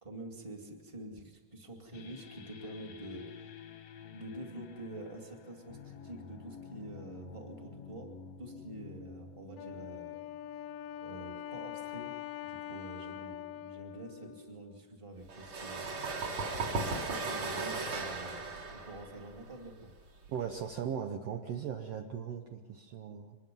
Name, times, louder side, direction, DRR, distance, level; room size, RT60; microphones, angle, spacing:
voice 1, 0.0-3.3 4.1-8.1 8.4-10.2 11.0-12.1 12.4-15.9 16.4-19.9, right 2 dB, 10° right, 2 dB, 1.6 m, -47 dB
sound 1, 1.9-11.3, left 6 dB, 60° left, 1.8 m, -50 dB
Wind instrument woodwind instrument, 9.6-15.0, left 11 dB, 75° left, 2.2 m, -44 dB
sound 2, 15.3-20.8, right 3 dB, 50° right, 3.8 m, -37 dB
voice 2, 20.3-23.4, right 8 dB, 80° right, 4 dB, 1.4 m, -38 dB
24.5 x 20.5 x 5.5 m, 1.3 s
omnidirectional pair, 4.2 m